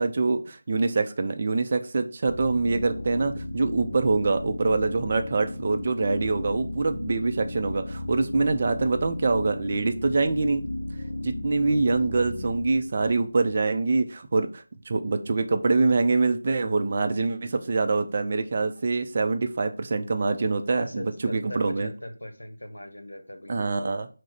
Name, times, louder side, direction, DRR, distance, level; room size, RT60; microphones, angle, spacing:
voice 1, 0.0-10.6 11.2-21.9 23.5-24.1, right 3 dB, 35° right, 7 dB, 0.4 m, -25 dB
sound 1, 2.3-14.0, left 1 dB, 55° left, 0.4 m, -35 dB
voice 2, 20.7-24.0, left 1 dB, 75° left, 6 dB, 0.8 m, -39 dB
4.6 x 2.0 x 4.1 m, 0.36 s
figure-of-eight pair, 165°, 0 cm